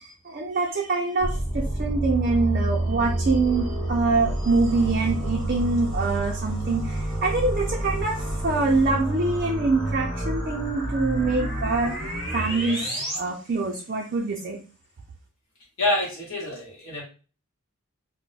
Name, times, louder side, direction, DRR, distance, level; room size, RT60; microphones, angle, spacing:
voice 1, 0.0-12.0 12.3-14.6, right 3 dB, 40° right, -1 dB, 0.4 m, -25 dB
sound 1, 1.2-13.2, right 1 dB, ahead, 0.8 m, -28 dB
voice 2, 15.8-17.0, left 2 dB, 60° left, -4 dB, 1.0 m, -26 dB
2.3 x 2.1 x 3.8 m, 0.36 s
head